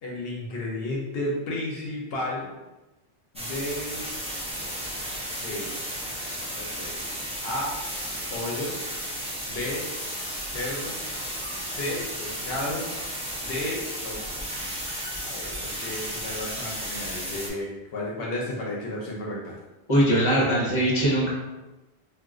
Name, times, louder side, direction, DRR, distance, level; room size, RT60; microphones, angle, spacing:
voice 1, 0.0-2.5 3.3-4.1 5.3-6.0 6.6-7.7 8.3-8.7 9.5-9.8 10.5-11.0 11.7-12.9 13.4-14.4 15.2-19.6, left 1 dB, 70° left, -3 dB, 0.8 m, -33 dB
sound 1, 3.4-17.5, equal, 10° right, 0.3 m, -34 dB
voice 2, 19.9-21.3, right 1 dB, 30° left, -5 dB, 0.8 m, -21 dB
2.4 x 2.3 x 3.7 m, 1.1 s
omnidirectional pair, 1.0 m